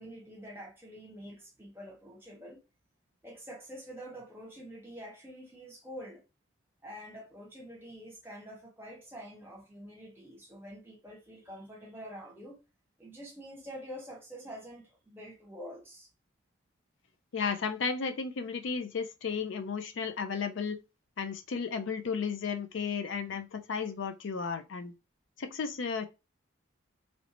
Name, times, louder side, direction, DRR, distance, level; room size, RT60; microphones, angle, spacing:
voice 1, 0.0-2.6 3.2-6.2 6.8-12.6 13.0-16.1, equal, 10° right, 1.0 m, -46 dB
voice 2, 17.3-20.8 21.2-24.9 25.4-26.1, left 5 dB, 65° left, 0.4 m, -34 dB
3.1 x 2.7 x 2.8 m
head